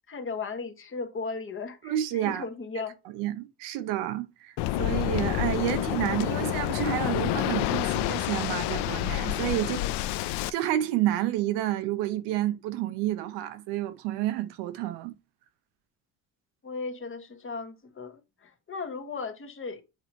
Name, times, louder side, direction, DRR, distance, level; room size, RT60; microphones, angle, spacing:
voice 1, 0.1-2.9 9.6-10.0 16.6-19.8, left 4 dB, 30° left, 1.3 m, -36 dB
voice 2, 1.8-2.4 3.0-9.8 10.1-15.1, right 13 dB, 85° right, 0.9 m, -30 dB
Waves surf, 4.6-10.5, left 15 dB, 80° left, 0.6 m, -28 dB
7.8 x 3.0 x 4.4 m
cardioid pair, 105°, 40 cm